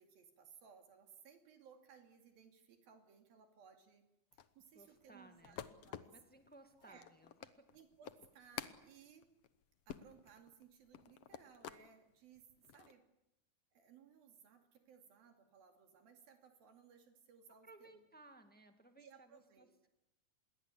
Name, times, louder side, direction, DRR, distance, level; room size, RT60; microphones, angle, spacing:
voice 1, 0.0-4.0 4.3-6.1 6.8-7.1 7.7-9.3 9.9-13.0 13.7-18.0 19.0-19.7, right 7 dB, 75° right, 4 dB, 4.3 m, -62 dB
sound 1, 4.3-11.9 12.4-12.9, left 9 dB, 65° left, 1.6 m, -51 dB
voice 2, 4.7-5.6 6.1-7.8 17.5-19.9, right 2 dB, 5° left, 6 dB, 0.7 m, -62 dB
26.5 x 22.0 x 8.4 m, 0.91 s
omnidirectional pair, 4.2 m